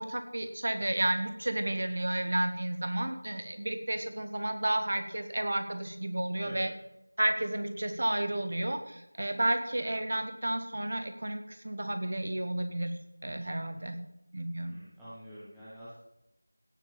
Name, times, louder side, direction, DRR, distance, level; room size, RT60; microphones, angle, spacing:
voice 1, 0.0-6.7 7.2-12.9 13.2-14.0 14.3-14.8, right 1 dB, 30° right, 7 dB, 1.3 m, -32 dB
voice 2, 13.6-13.9 14.6-16.0, equal, ahead, -15 dB, 0.7 m, -47 dB
16.5 x 7.1 x 5.2 m, 0.83 s
figure-of-eight pair, 180°, 0 cm